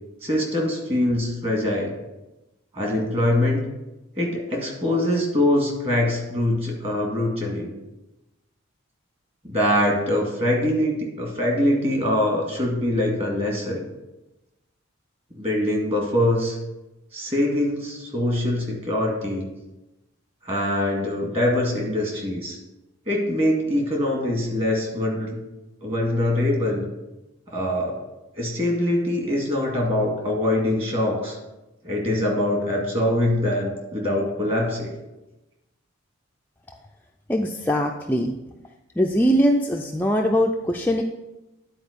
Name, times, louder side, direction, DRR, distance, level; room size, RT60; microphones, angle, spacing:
voice 1, 0.2-1.9 2.7-3.6 4.2-7.7 9.4-13.8 15.4-16.6 17.1-19.5 20.5-22.6 23.1-25.4 25.8-26.8 27.5-28.0 28.4-31.4 31.8-34.9, left 1 dB, 30° right, -1 dB, 2.0 m, -23 dB
voice 2, 37.3-38.4 39.0-41.0, equal, 10° left, 1 dB, 0.4 m, -21 dB
9.9 x 4.5 x 5.1 m, 0.99 s
head